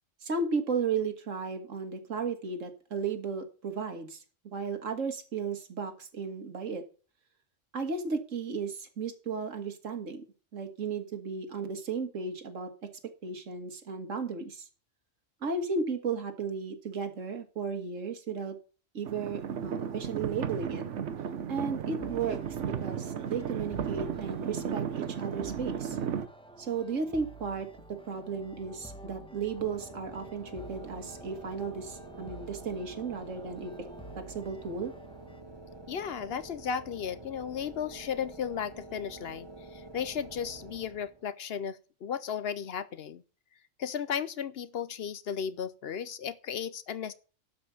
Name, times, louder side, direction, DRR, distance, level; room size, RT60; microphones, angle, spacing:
voice 1, 0.2-6.8 7.7-10.2 10.5-12.7 13.2-14.7 15.4-18.6 18.9-20.8 21.5-26.0 26.6-27.7 28.1-33.7 34.2-34.9, right 5 dB, 90° right, 2.0 m, -34 dB
sound 1, 19.0-26.3, right 8 dB, 70° right, 1.2 m, -34 dB
sound 2, 22.0-35.4, right 1 dB, 5° left, 1.1 m, -50 dB
sound 3, 29.6-41.3, right 2 dB, 20° right, 1.1 m, -48 dB
voice 2, 35.9-43.2 43.8-47.1, left 7 dB, 60° left, 0.8 m, -35 dB
12.0 x 5.2 x 7.0 m
omnidirectional pair, 1.3 m